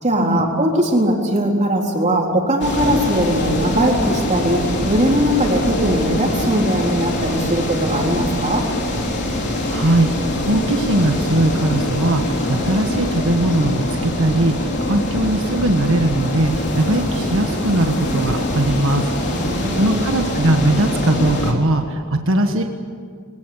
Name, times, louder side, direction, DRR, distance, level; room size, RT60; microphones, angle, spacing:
voice 1, 0.0-8.7 19.3-20.0, right 1 dB, 35° right, 0 dB, 3.9 m, -20 dB
sound 1, 2.6-21.5, left 1 dB, 50° left, 3.5 m, -23 dB
voice 2, 9.7-10.1 10.4-22.6, right 1 dB, 65° right, 4 dB, 1.6 m, -20 dB
22.5 x 18.5 x 9.9 m, 2.1 s
head